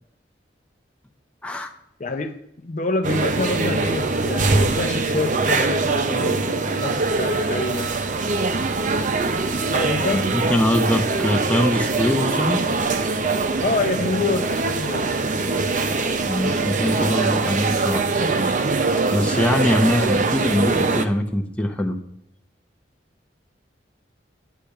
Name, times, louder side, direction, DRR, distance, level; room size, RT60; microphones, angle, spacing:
voice 1, 2.0-7.9 9.7-10.2 13.6-15.1, left 3 dB, 45° left, 6 dB, 0.6 m, -27 dB
sound 1, 3.0-21.0, right 3 dB, 45° right, 0.6 m, -22 dB
voice 2, 10.1-12.7 16.3-18.1 19.1-22.0, left 1 dB, 5° left, 2 dB, 0.7 m, -22 dB
10.0 x 3.4 x 6.5 m, 0.78 s
head